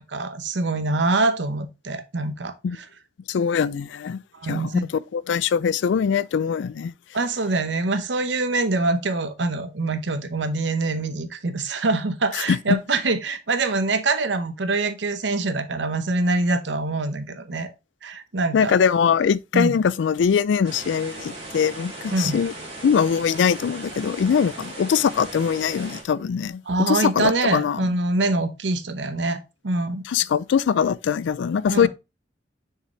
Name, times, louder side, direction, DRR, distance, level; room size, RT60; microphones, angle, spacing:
voice 1, 0.0-2.5 4.3-4.9 7.1-17.7 18.0-18.8 19.5-19.7 22.1-22.4 26.7-30.0 31.7-31.9, right 2 dB, 70° right, 0.8 m, -24 dB
voice 2, 3.3-4.2 4.5-6.9 12.3-12.8 18.5-22.5 22.8-27.9 30.1-31.9, left 7 dB, 75° left, 0.3 m, -22 dB
sound 1, 20.6-26.0, right 2 dB, 35° right, 2.7 m, -38 dB
6.6 x 4.7 x 3.0 m
head